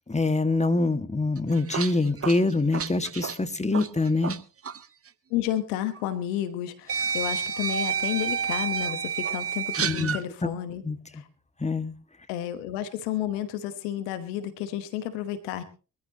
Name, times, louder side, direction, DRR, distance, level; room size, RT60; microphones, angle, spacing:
voice 1, 0.1-4.4 9.8-10.2 10.4-10.5 10.8-11.0 11.6-11.9, left 3 dB, 15° left, 10 dB, 1.9 m, -25 dB
sound 1, 1.4-4.4 4.6-4.8 6.0-6.1 6.9-10.2, right 7 dB, 35° right, 0.9 m, -29 dB
voice 2, 5.3-10.8 11.1-11.2 12.3-15.6, left 12 dB, 80° left, 12 dB, 1.3 m, -31 dB
23.0 x 14.0 x 2.9 m, 0.34 s
hypercardioid pair, 40°, 41 cm